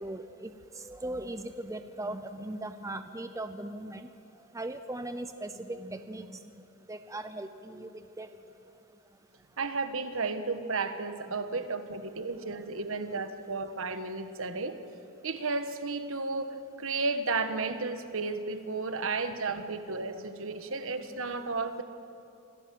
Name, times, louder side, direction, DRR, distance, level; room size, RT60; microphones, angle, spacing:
voice 1, 0.0-0.5 0.8-4.1 4.5-6.4 6.9-7.9 8.2-8.3 11.3-11.6 11.9-12.1 12.6-12.7 20.1-20.3, right 1 dB, 15° right, 9 dB, 0.6 m, -39 dB
voice 2, 9.6-14.8 15.2-21.8, right 3 dB, 65° right, 8 dB, 1.4 m, -33 dB
25.5 x 16.5 x 7.8 m, 2.6 s
head